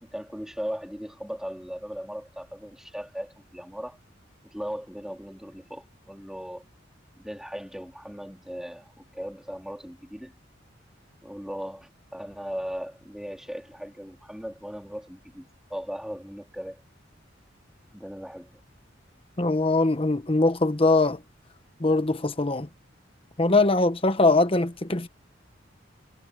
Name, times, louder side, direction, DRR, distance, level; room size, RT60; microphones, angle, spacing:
voice 1, 0.0-4.0 4.4-6.7 7.2-10.4 11.2-16.8 17.9-18.6, equal, 5° right, 3.8 m, -38 dB
voice 2, 19.4-21.2 21.8-22.7 23.4-25.1, left 2 dB, 30° left, 1.0 m, -22 dB
head